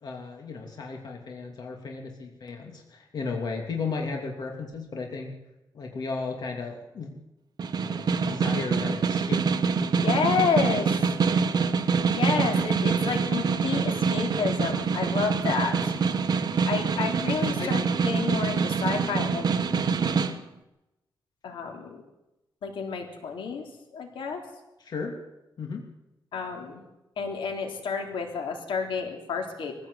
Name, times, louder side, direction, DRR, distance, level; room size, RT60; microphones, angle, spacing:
voice 1, 0.0-5.3 5.7-7.2 7.7-9.5 16.9-17.0 17.6-17.7 24.8-25.1 25.6-25.8, left 4 dB, 55° left, 2 dB, 2.8 m, -35 dB
Snare drum, 7.6-20.3, right 5 dB, 50° right, 1.4 m, -25 dB
voice 2, 10.0-11.1 12.1-15.9 16.7-19.5 21.4-22.0 22.6-23.6 23.9-24.4 26.3-26.8 27.2-29.8, left 5 dB, 85° left, 3 dB, 3.6 m, -30 dB
22.5 x 16.0 x 8.2 m, 0.97 s
wide cardioid pair, 155°, 9 cm